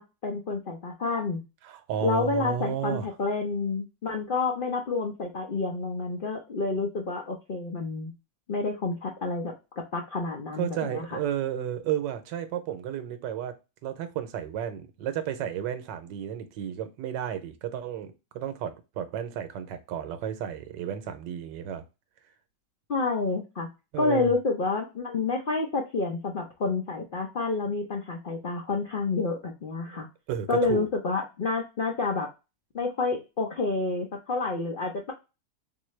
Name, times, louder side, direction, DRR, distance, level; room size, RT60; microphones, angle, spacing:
voice 1, 0.0-1.4 2.0-8.1 8.5-9.5 9.9-11.1 22.9-23.7 24.0-30.1 30.5-32.3 32.7-35.1, left 3 dB, 90° left, 0.4 m, -29 dB
voice 2, 1.6-3.1 10.6-13.6 13.8-21.8 23.9-24.3 29.9-30.9, right 9 dB, 80° right, 1.2 m, -33 dB
3.8 x 2.6 x 3.1 m
omnidirectional pair, 1.9 m